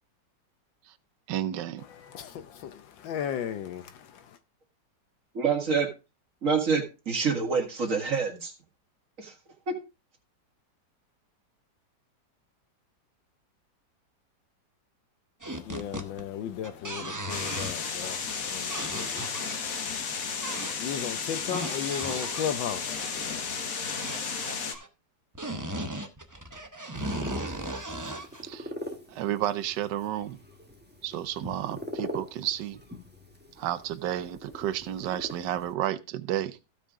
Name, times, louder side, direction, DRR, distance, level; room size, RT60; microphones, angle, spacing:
voice 1, 1.3-1.8 28.4-28.7 29.1-30.4 31.0-32.8 33.6-36.6, right 12 dB, 70° right, 1.3 m, -31 dB
voice 2, 1.8-4.4 15.4-23.5, left 9 dB, 85° left, 1.5 m, -36 dB
voice 3, 5.3-5.9 6.4-8.5 9.2-9.3 9.7-9.8, right 5 dB, 45° right, 2.2 m, -27 dB
sound 1, 15.4-16.2 16.5-18.0 18.7-19.5 20.4-20.9 21.4-22.6 23.9-24.9 25.3-28.4, right 1 dB, 25° right, 0.4 m, -36 dB
sound 2, 17.3-24.8, left 5 dB, 50° left, 1.5 m, -33 dB
sound 3, 26.9-35.7, equal, 5° right, 1.1 m, -42 dB
15.5 x 5.1 x 3.6 m
omnidirectional pair, 2.0 m